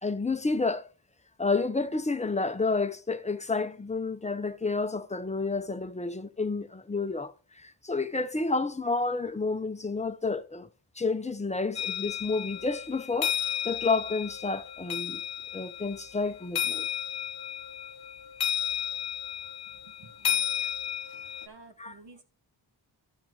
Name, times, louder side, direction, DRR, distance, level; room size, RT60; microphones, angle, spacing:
voice 1, 0.0-0.9 1.4-10.7 11.0-15.2 15.5-16.9 20.6-20.7 21.8-22.0, left 3 dB, 15° left, 0.6 m, -30 dB
sound 1, 11.8-21.5, left 9 dB, 55° left, 0.8 m, -33 dB
voice 2, 20.0-20.4 21.5-22.2, right 3 dB, 60° right, 1.9 m, -52 dB
11.5 x 5.9 x 3.9 m
wide cardioid pair, 150°, 47 cm